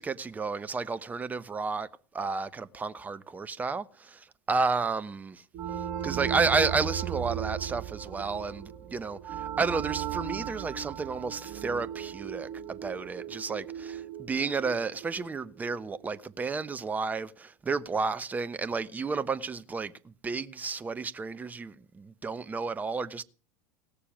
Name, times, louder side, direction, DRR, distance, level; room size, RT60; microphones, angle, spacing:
voice 1, 0.0-1.9 2.1-5.4 5.8-23.2, right 4 dB, 20° right, 1.1 m, -32 dB
sound 1, 5.5-16.0, right 10 dB, 50° right, 3.5 m, -37 dB
17.5 x 6.8 x 8.8 m
hypercardioid pair, 80°, 9 cm